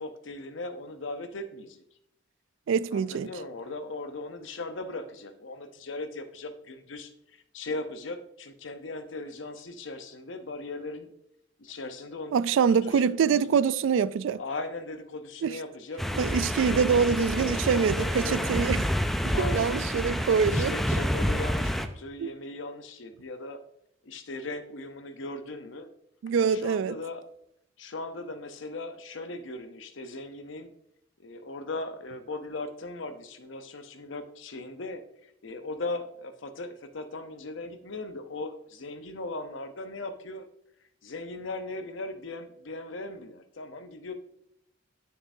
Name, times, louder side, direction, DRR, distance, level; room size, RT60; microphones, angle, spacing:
voice 1, 0.0-1.8 2.9-7.1 7.5-11.1 11.6-12.3 12.8-13.4 14.4-18.6 19.2-19.8 20.4-23.6 24.0-25.9 26.4-27.2 27.8-30.7 31.2-40.5 41.0-44.1, left 2 dB, 75° left, 0.8 m, -38 dB
voice 2, 2.7-3.3 12.3-14.4 15.4-15.6 16.2-18.8 19.2-20.7 22.2-22.3 26.2-26.9, right 6 dB, 75° right, 0.3 m, -25 dB
sound 1, 16.0-21.9, equal, ahead, 0.4 m, -28 dB
9.7 x 6.6 x 2.7 m
head